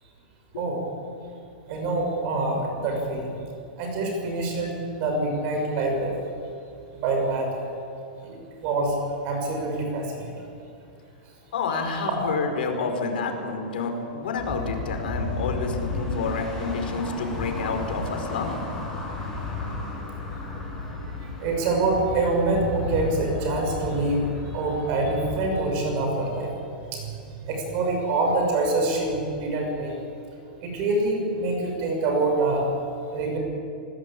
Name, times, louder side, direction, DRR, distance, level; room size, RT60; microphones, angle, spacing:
voice 1, 1.7-3.3 3.8-6.2 6.9-7.6 8.2-8.9 9.2-10.3 21.4-24.2 24.5-26.5 26.9-27.1 27.4-29.9 30.6-32.6 33.1-33.4, right 2 dB, 30° right, 2 dB, 6.3 m, -25 dB
voice 2, 11.5-18.6, left 4 dB, 80° left, 4 dB, 5.1 m, -29 dB
sound 1, 14.4-25.6, left 3 dB, 10° left, 6.6 m, -33 dB
27.0 x 18.0 x 8.8 m, 2.5 s
supercardioid pair, 180°, 5 cm